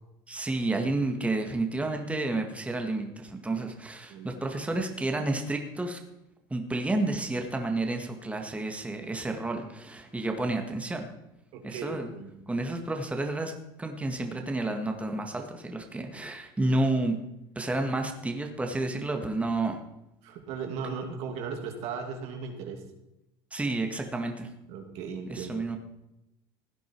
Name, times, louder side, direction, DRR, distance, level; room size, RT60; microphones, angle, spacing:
voice 1, 0.3-6.0 6.5-11.1 11.6-12.1 12.5-13.5 13.8-17.2 17.6-19.8 23.5-24.5 25.3-25.8, right 2 dB, 10° right, 4 dB, 1.8 m, -30 dB
voice 2, 11.5-12.3 20.2-22.8 24.7-25.6, right 5 dB, 70° right, 4 dB, 2.6 m, -37 dB
16.5 x 9.5 x 4.7 m, 0.89 s
supercardioid pair, 100°, 12 cm